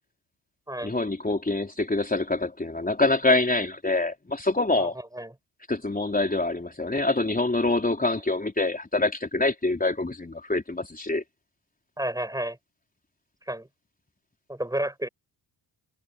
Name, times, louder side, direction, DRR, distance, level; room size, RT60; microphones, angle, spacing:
voice 1, 0.8-4.9 5.7-11.2, left 2 dB, 20° left, 4.7 m, -25 dB
voice 2, 4.8-5.3 12.0-12.6 13.5-13.7 14.5-15.1, right 1 dB, 10° right, 6.5 m, -31 dB
cardioid pair, 85°, 45 cm